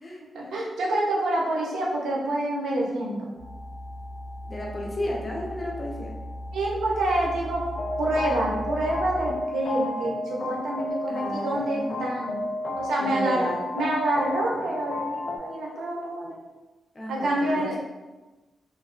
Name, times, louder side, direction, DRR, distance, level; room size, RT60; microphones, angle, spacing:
voice 1, 0.3-3.3 6.5-7.7 8.0-12.4 12.8-13.5 13.7-16.4 17.1-17.8, right 1 dB, 85° right, -2 dB, 0.6 m, -27 dB
sound 1, 3.4-9.3, equal, 10° right, 1.2 m, -37 dB
voice 2, 4.5-6.1 11.1-12.2 13.0-13.6 16.9-17.8, left 1 dB, 30° left, -2 dB, 0.9 m, -34 dB
sound 2, 7.7-15.4, left 2 dB, 55° left, 0.4 m, -32 dB
3.2 x 2.7 x 2.5 m, 1.1 s
cardioid pair, 55°, 0 cm